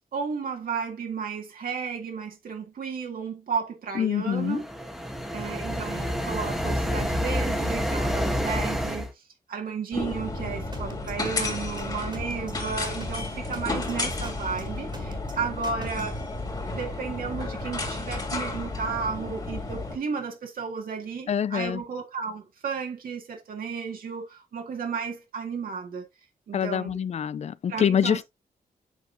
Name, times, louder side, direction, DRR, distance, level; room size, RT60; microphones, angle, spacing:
voice 1, 0.0-4.6 5.3-9.2 9.5-16.2 16.7-26.1 26.5-27.0 27.7-28.2, right 5 dB, 70° right, 2.0 m, -33 dB
voice 2, 4.0-4.6 21.3-21.8 26.5-28.2, left 8 dB, 45° left, 0.4 m, -25 dB
sound 1, 4.4-9.1, equal, ahead, 1.2 m, -28 dB
sound 2, 9.9-20.0, left 2 dB, 25° left, 2.5 m, -32 dB
sound 3, 10.7-16.2, right 1 dB, 30° right, 2.0 m, -41 dB
8.1 x 6.1 x 2.7 m
wide cardioid pair, 170°, 15 cm